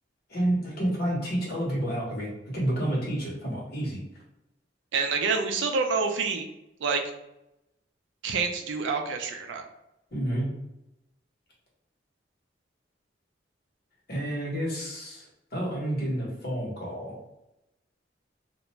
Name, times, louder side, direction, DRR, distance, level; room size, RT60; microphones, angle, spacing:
voice 1, 0.3-4.0 10.1-10.5 14.1-17.1, right 1 dB, 55° left, -4 dB, 1.1 m, -30 dB
voice 2, 4.9-6.5 6.8-7.1 8.2-9.6, right 4 dB, 90° right, 5 dB, 0.4 m, -27 dB
2.4 x 2.2 x 3.0 m, 0.89 s
head